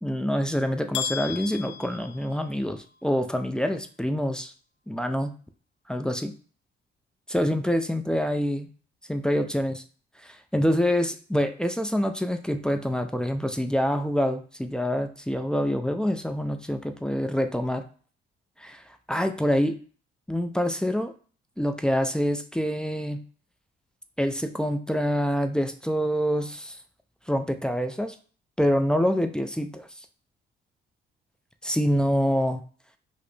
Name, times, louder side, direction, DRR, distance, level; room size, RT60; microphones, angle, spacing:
voice 1, 0.0-4.5 4.9-5.3 5.9-6.3 7.3-8.7 9.1-9.8 10.2-17.8 18.6-18.8 19.1-19.8 20.3-21.1 21.6-23.2 24.2-26.8 27.3-28.2 28.6-29.9 31.6-32.6, equal, 5° left, 7 dB, 0.4 m, -26 dB
sound 1, 0.9-2.9, left 8 dB, 65° left, 0.5 m, -35 dB
4.9 x 2.0 x 3.1 m, 0.41 s
cardioid pair, 90°, 20 cm